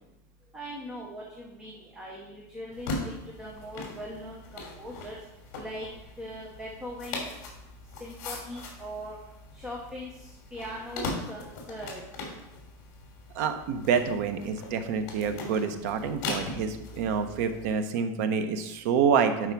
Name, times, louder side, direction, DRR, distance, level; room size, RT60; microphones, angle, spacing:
voice 1, 0.5-3.1 3.4-5.2 5.6-5.9 6.2-7.2 8.0-9.2 9.6-12.0, equal, 5° right, -3 dB, 1.0 m, -40 dB
sound 1, 2.7-17.7, left 2 dB, 50° left, 2.9 m, -40 dB
voice 2, 13.3-19.5, right 6 dB, 60° right, 8 dB, 0.9 m, -27 dB
11.0 x 4.7 x 4.7 m, 0.92 s
supercardioid pair, 175°, 9 cm